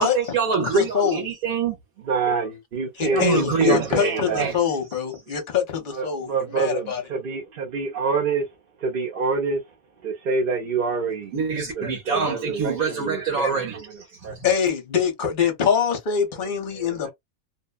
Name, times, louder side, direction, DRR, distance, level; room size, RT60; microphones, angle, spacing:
voice 1, 0.0-1.8 3.1-4.5 11.3-13.8 14.3-14.5, right 6 dB, 80° right, 1.3 m, -25 dB
voice 2, 0.6-1.2 3.0-7.0 13.4-13.5 14.4-17.1, left 7 dB, 40° left, 0.9 m, -24 dB
voice 3, 2.0-4.5 5.9-8.5 8.8-9.7 10.0-11.3 11.7-14.3 16.7-17.1, right 4 dB, 50° right, 0.8 m, -27 dB
2.7 x 2.2 x 2.3 m
omnidirectional pair, 1.4 m